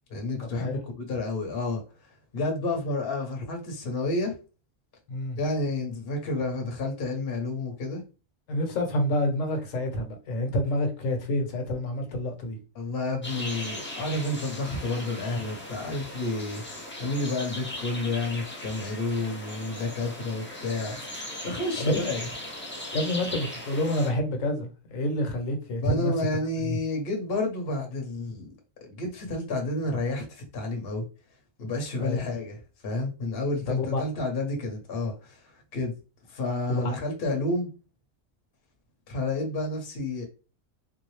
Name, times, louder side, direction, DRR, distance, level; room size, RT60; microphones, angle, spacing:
voice 1, 0.1-1.8 2.3-4.3 5.4-8.0 12.7-21.0 21.4-22.3 25.8-28.5 28.8-31.0 31.6-32.6 32.8-35.9 36.3-37.7 39.1-40.2, left 2 dB, 50° left, 1.1 m, -30 dB
voice 2, 8.5-12.6 21.8-22.1 22.9-26.1 26.6-26.8 32.0-32.2 33.7-34.0 36.7-37.0, left 1 dB, 70° left, 1.3 m, -28 dB
sound 1, 13.2-24.1, left 1 dB, 15° left, 0.5 m, -38 dB
3.7 x 2.7 x 3.1 m
omnidirectional pair, 1.4 m